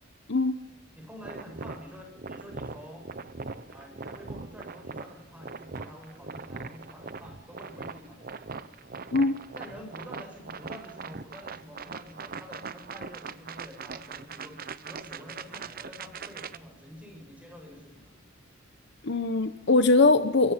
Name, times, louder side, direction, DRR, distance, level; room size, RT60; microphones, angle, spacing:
voice 1, 0.9-3.1 3.7-8.5 9.5-14.6 14.8-18.2, equal, 5° right, 2 dB, 7.7 m, -47 dB
sound 1, 1.2-16.6, right 4 dB, 50° right, 0.9 m, -41 dB
voice 2, 19.0-20.5, left 3 dB, 60° left, 10 dB, 1.1 m, -21 dB
24.0 x 23.5 x 6.0 m, 0.80 s
head